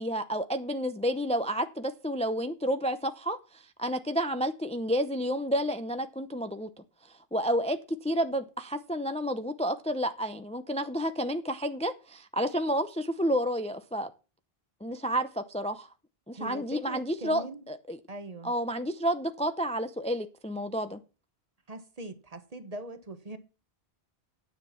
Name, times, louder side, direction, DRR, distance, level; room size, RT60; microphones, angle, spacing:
voice 1, 0.0-6.7 7.3-14.1 14.8-15.9 16.3-18.0 18.4-21.0, equal, 10° left, 0.5 m, -30 dB
voice 2, 16.3-17.7 18.1-18.5 21.7-23.4, right 2 dB, 40° right, 1.1 m, -41 dB
9.5 x 7.5 x 5.7 m
omnidirectional pair, 1.1 m